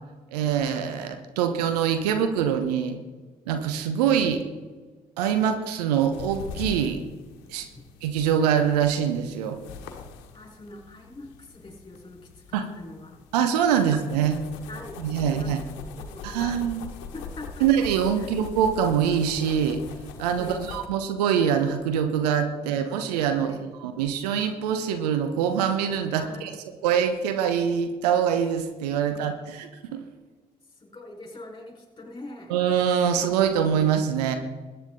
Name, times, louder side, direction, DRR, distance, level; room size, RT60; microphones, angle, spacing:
voice 1, 0.3-3.0 3.5-4.4 5.2-7.0 7.5-7.7 8.0-9.6 12.5-12.7 13.3-14.4 15.0-15.6 16.2-16.8 17.6-19.8 20.2-23.5 23.8-26.5 26.8-30.0 32.5-34.4, right 8 dB, 75° right, 8 dB, 1.0 m, -24 dB
sound 1, 6.1-20.9, left 6 dB, 70° left, 1.2 m, -42 dB
voice 2, 10.3-12.2 12.5-13.2 13.8-14.0 14.7-16.6 17.1-17.7 18.2-18.4 20.4-20.8 23.3-23.7 26.2-26.5 30.8-32.5, left 2 dB, 20° left, 0 dB, 5.0 m, -43 dB
21.5 x 9.3 x 3.9 m, 1.3 s
figure-of-eight pair, 40°, 20 cm